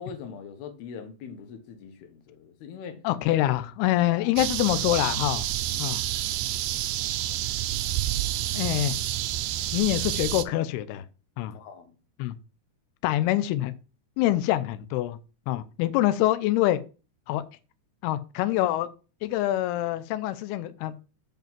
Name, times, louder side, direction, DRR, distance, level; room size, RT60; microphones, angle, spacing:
voice 1, 0.0-3.0 4.1-4.3 5.7-5.9 11.5-12.0, left 6 dB, 65° left, 3.0 m, -42 dB
voice 2, 3.0-5.5 5.8-6.0 8.5-9.0 9.7-11.0 11.4-11.5 12.2-12.4 13.0-13.7 14.2-15.2 15.5-16.8 17.3-17.4 18.0-18.9 19.2-21.0, left 15 dB, 90° left, 2.3 m, -25 dB
sound 1, 4.4-10.4, right 13 dB, 85° right, 2.2 m, -29 dB
7.9 x 5.1 x 7.3 m
omnidirectional pair, 5.3 m